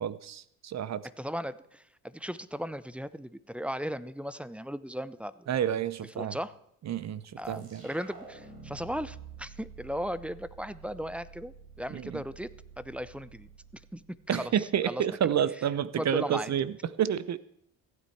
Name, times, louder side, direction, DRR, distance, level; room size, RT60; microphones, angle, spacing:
voice 1, 0.0-1.1 5.5-6.4 6.9-7.8 11.9-12.2 14.3-17.4, right 9 dB, 50° right, 17 dB, 0.7 m, -29 dB
voice 2, 1.2-5.5 6.1-6.5 7.4-13.5 13.9-14.5 14.9-15.0 16.0-16.5, equal, 5° right, 17 dB, 0.5 m, -37 dB
sound 1, 7.4-14.7, right 5 dB, 85° right, 4.9 m, -50 dB
15.0 x 9.2 x 4.6 m, 0.72 s
cardioid pair, 80°, 36 cm